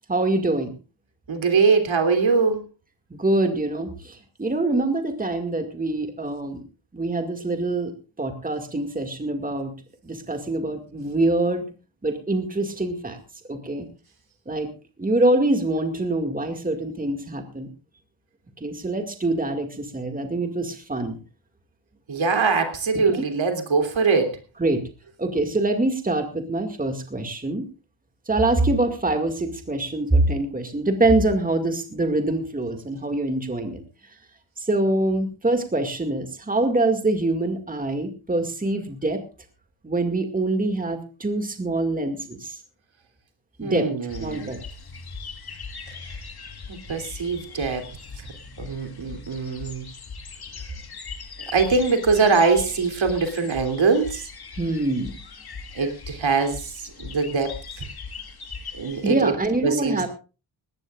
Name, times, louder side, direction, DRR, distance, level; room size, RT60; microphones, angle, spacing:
voice 1, 0.1-0.7 3.1-6.6 6.9-7.9 8.2-9.7 10.0-11.7 12.0-13.2 13.5-13.9 14.5-14.7 15.0-17.7 18.6-21.2 23.2-23.3 24.6-24.8 25.2-27.6 28.3-33.8 34.6-39.2 39.8-42.6 43.6-43.9 44.2-44.6 54.6-55.2 59.0-60.1, right 2 dB, 15° right, 6 dB, 2.1 m, -24 dB
voice 2, 1.3-2.7 22.1-24.4 43.6-44.6 45.9-46.2 46.7-47.9 48.2-48.3 48.6-49.8 51.4-54.3 55.7-57.9 58.7-59.3 59.6-60.1, right 4 dB, 70° right, 6 dB, 3.1 m, -23 dB
sound 1, 44.1-59.1, left 4 dB, 50° left, 1.9 m, -40 dB
19.5 x 17.0 x 2.5 m, 0.33 s
wide cardioid pair, 135°, 48 cm